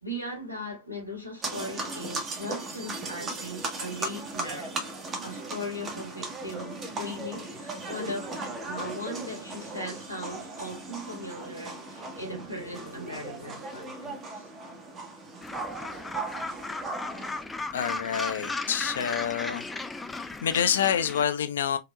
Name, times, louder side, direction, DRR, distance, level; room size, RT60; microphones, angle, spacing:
voice 1, 0.0-4.9 5.2-14.5, left 1 dB, 90° right, 1.7 m, -38 dB
sound 1, 1.4-17.4, right 2 dB, 25° right, 1.1 m, -37 dB
Gull seagull, 15.4-21.2, left 3 dB, 10° left, 0.4 m, -36 dB
voice 2, 17.7-19.7 20.4-21.8, left 8 dB, 65° left, 0.5 m, -27 dB
4.7 x 2.7 x 2.3 m
figure-of-eight pair, 90°, 0 cm